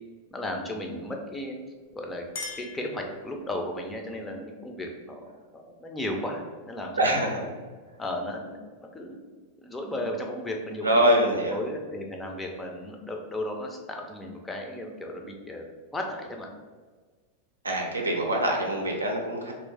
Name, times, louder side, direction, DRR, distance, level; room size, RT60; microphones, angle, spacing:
voice 1, 0.3-1.6 1.9-2.2 2.5-5.2 5.5-7.5 8.0-9.2 9.6-16.5, left 1 dB, 15° left, 2 dB, 0.5 m, -35 dB
Chink clink, 1.8-3.6, left 4 dB, 60° left, 0.6 m, -42 dB
voice 2, 7.0-7.4 10.8-11.6 17.6-19.5, right 1 dB, 80° right, 1 dB, 0.5 m, -24 dB
3.0 x 2.5 x 3.4 m, 1.4 s
figure-of-eight pair, 90°, 0 cm